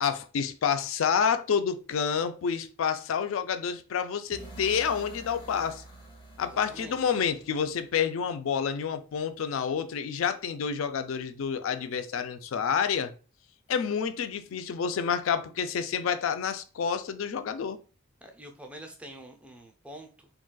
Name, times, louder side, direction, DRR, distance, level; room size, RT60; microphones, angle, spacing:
voice 1, 0.0-5.8 6.4-13.1 13.7-17.8, left 7 dB, 70° left, 0.4 m, -29 dB
sound 1, 4.3-8.2, right 2 dB, 20° left, 0.7 m, -48 dB
voice 2, 6.4-7.1 18.2-20.3, right 1 dB, 5° right, 0.4 m, -46 dB
3.8 x 2.3 x 2.2 m
head